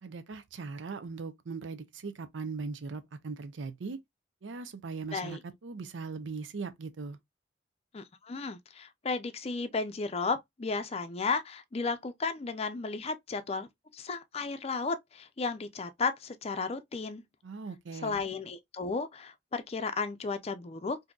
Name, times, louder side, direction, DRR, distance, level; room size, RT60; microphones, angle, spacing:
voice 1, 0.0-4.0 4.4-7.2 17.4-18.2, right 4 dB, 85° right, 0.5 m, -39 dB
voice 2, 7.9-13.7 13.9-17.2 18.0-21.0, left 4 dB, 35° left, 0.5 m, -34 dB
3.7 x 2.7 x 2.2 m
head